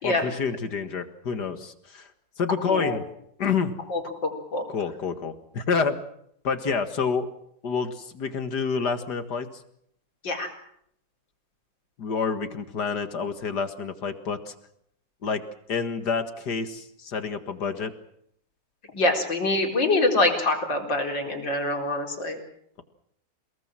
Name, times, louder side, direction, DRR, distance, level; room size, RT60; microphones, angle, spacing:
voice 1, 0.0-2.1 2.4-3.1 3.4-3.8 4.7-6.0 6.4-7.3 7.6-9.5 12.0-14.5 15.2-15.4 15.7-17.9, left 5 dB, 60° left, 9 dB, 2.3 m, -28 dB
voice 2, 3.9-4.6 10.2-10.5 18.9-22.4, left 2 dB, 75° left, 2 dB, 4.9 m, -25 dB
29.5 x 19.0 x 7.6 m, 0.72 s
omnidirectional pair, 2.0 m